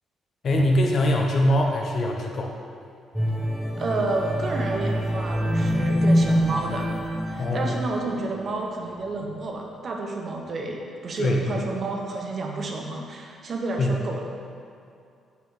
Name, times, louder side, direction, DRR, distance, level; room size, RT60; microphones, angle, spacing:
voice 1, 0.4-2.5 5.6-5.8 7.4-7.7 11.2-11.6 13.8-14.0, left 1 dB, 55° left, 0 dB, 0.8 m, -23 dB
sound 1, 3.1-8.4 8.9-9.1, equal, 5° right, 1.0 m, -25 dB
voice 2, 3.8-6.9 7.3-14.2, right 2 dB, 45° right, 1 dB, 0.8 m, -30 dB
5.8 x 4.5 x 3.7 m, 2.4 s
cardioid pair, 90°, 0 cm